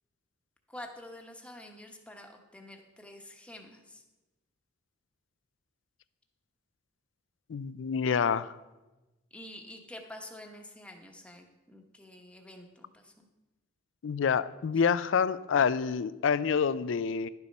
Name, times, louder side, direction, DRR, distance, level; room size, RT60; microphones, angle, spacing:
voice 1, 0.7-4.0 9.3-13.3, left 1 dB, 5° left, 3 dB, 1.0 m, -48 dB
voice 2, 7.5-8.6 14.0-17.3, left 6 dB, 80° left, 16 dB, 0.4 m, -27 dB
11.0 x 7.0 x 5.3 m, 1.1 s
head